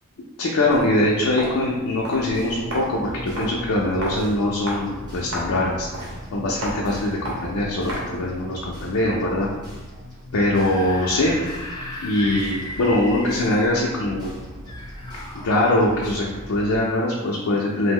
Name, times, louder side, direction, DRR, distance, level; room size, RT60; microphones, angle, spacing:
voice 1, 0.4-6.0 6.3-9.5 10.3-11.3 12.0-14.3 15.3-17.9, left 1 dB, 80° left, -3 dB, 0.4 m, -22 dB
Walk footsteps, 0.6-8.3, equal, 65° right, 0.7 m, -35 dB
sound 1, 2.3-16.8, equal, 20° right, 0.8 m, -39 dB
Screaming / Screech, 10.3-13.7 14.7-15.8, left 1 dB, 20° left, 0.4 m, -36 dB
2.9 x 2.0 x 3.5 m, 1.3 s
head